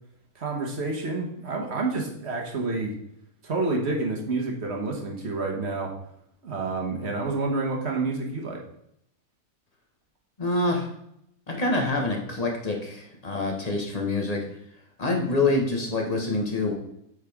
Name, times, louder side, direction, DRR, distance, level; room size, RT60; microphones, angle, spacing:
voice 1, 0.3-2.9 3.4-5.9 6.4-8.6, right 3 dB, 50° right, 0 dB, 1.5 m, -29 dB
voice 2, 10.4-10.9 11.5-14.4 15.0-16.7, left 2 dB, 30° left, 1 dB, 1.4 m, -26 dB
8.3 x 5.0 x 3.5 m, 0.75 s
omnidirectional pair, 1.5 m